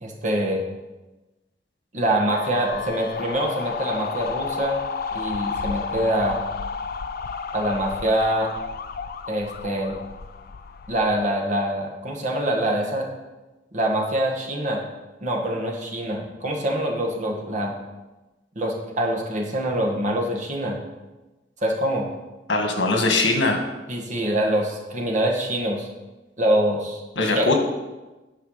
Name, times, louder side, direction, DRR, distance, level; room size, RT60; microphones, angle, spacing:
voice 1, 0.0-0.6 1.9-4.8 5.1-6.4 7.5-8.5 9.3-10.0 10.9-13.1 13.7-14.8 15.2-17.7 18.5-20.8 21.6-22.1 23.9-25.9 26.4-27.0 27.3-27.5, right 1 dB, 45° right, 0 dB, 1.6 m, -24 dB
sound 1, 2.3-11.3, left 5 dB, 55° left, 0.4 m, -32 dB
voice 2, 22.5-23.6 27.2-27.5, left 2 dB, 85° left, 3 dB, 1.7 m, -21 dB
10.5 x 5.8 x 5.7 m, 1.1 s
head